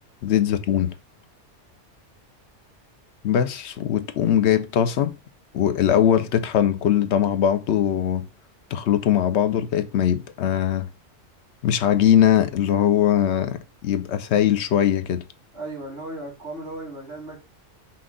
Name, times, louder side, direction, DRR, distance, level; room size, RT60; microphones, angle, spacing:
voice 1, 0.2-0.9 3.2-5.2 5.5-8.2 8.7-10.9 11.6-15.2, left 10 dB, 70° left, 0.9 m, -21 dB
voice 2, 15.5-17.5, right 2 dB, 70° right, 2.9 m, -36 dB
5.9 x 2.4 x 3.6 m
omnidirectional pair, 1.3 m